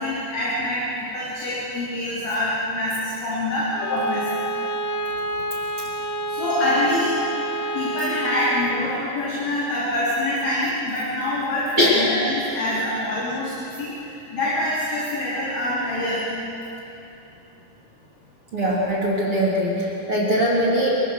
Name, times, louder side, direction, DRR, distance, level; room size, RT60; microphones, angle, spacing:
voice 1, 0.0-4.3 6.3-7.2 7.7-16.3, left 1 dB, 40° left, -7 dB, 4.5 m, -25 dB
Bowed string instrument, 3.7-8.9, right 1 dB, 85° left, 1.4 m, -28 dB
voice 2, 18.5-20.9, equal, 35° right, -5 dB, 3.6 m, -21 dB
29.5 x 24.5 x 6.5 m, 2.9 s
omnidirectional pair, 5.1 m